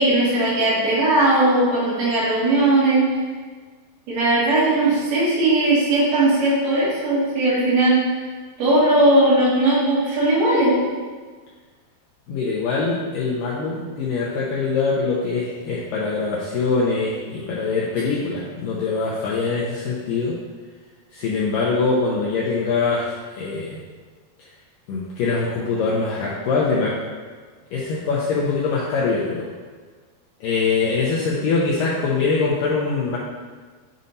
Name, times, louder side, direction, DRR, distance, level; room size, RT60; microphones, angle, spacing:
voice 1, 0.0-3.1 4.1-8.0 8.6-10.8, right 2 dB, 65° right, -8 dB, 4.0 m, -18 dB
voice 2, 12.3-20.4 21.1-23.8 24.9-27.0 27.7-29.5 30.4-33.2, left 4 dB, 90° left, -5 dB, 1.9 m, -23 dB
10.5 x 5.2 x 2.7 m, 1.5 s
omnidirectional pair, 4.9 m